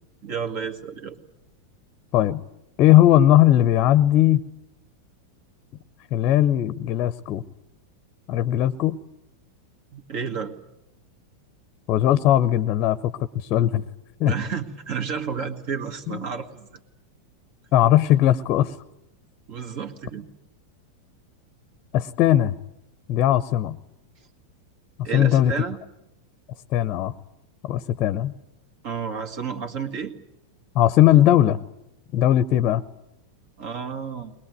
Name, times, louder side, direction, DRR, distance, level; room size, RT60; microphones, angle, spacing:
voice 1, 0.2-1.2 9.9-10.5 14.2-16.7 19.5-20.3 25.0-25.8 28.8-30.1 33.6-34.3, right 6 dB, 45° right, 5 dB, 1.9 m, -31 dB
voice 2, 2.8-4.4 6.1-7.4 8.3-9.0 11.9-13.8 14.2-14.3 16.1-16.2 17.7-18.8 21.9-22.5 23.1-23.8 25.0-25.5 26.7-27.1 27.6-28.3 30.7-31.6 32.1-32.8, left 12 dB, 40° left, 17 dB, 0.8 m, -19 dB
21.5 x 21.5 x 9.4 m, 0.87 s
figure-of-eight pair, 90°, 0 cm